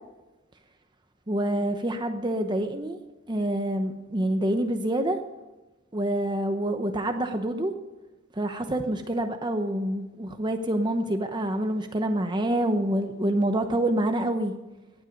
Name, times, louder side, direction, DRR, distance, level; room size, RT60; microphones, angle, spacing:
voice 1, 1.3-3.0 3.3-5.2 5.9-7.7 8.3-14.5, right 1 dB, 20° right, 6 dB, 0.8 m, -27 dB
19.0 x 10.5 x 5.3 m, 1.1 s
head